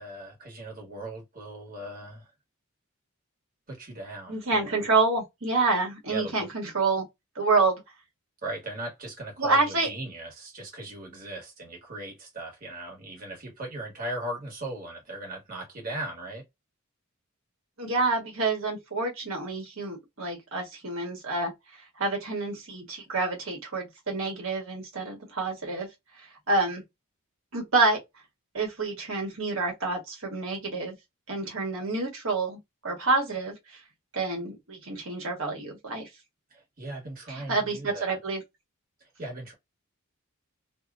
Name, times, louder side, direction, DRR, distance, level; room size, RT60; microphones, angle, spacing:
voice 1, 0.0-2.3 3.7-4.8 6.1-6.5 8.4-16.4 36.5-38.2 39.0-39.5, right 2 dB, 40° right, 1.3 m, -38 dB
voice 2, 4.3-7.0 7.3-7.8 9.4-9.9 17.8-21.5 22.0-25.9 26.2-26.8 27.5-28.0 28.5-30.9 31.3-33.8 34.1-36.1 37.3-38.4, right 3 dB, 60° right, 1.3 m, -28 dB
2.8 x 2.2 x 2.5 m
head